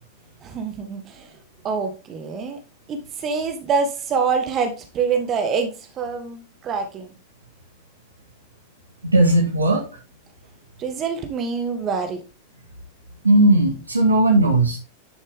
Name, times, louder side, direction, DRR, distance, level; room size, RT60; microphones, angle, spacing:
voice 1, 0.4-1.3 1.6-2.6 2.9-7.1 10.8-12.2, right 5 dB, 30° right, 5 dB, 1.7 m, -25 dB
voice 2, 9.0-9.9 13.2-14.8, right 2 dB, 80° right, 1 dB, 2.1 m, -17 dB
10.5 x 6.3 x 3.7 m, 0.30 s
figure-of-eight pair, 90°, 0 cm